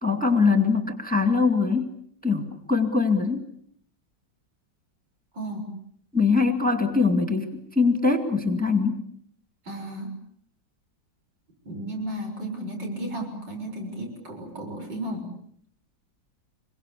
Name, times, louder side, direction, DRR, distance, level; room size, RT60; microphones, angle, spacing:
voice 1, 0.0-1.9 2.2-3.5 6.1-7.5 7.8-9.0, left 4 dB, 5° left, 5 dB, 2.2 m, -22 dB
voice 2, 5.3-5.7 9.6-10.1 11.6-15.3, right 1 dB, 70° right, 3 dB, 7.4 m, -34 dB
27.0 x 23.5 x 8.4 m, 0.67 s
omnidirectional pair, 2.0 m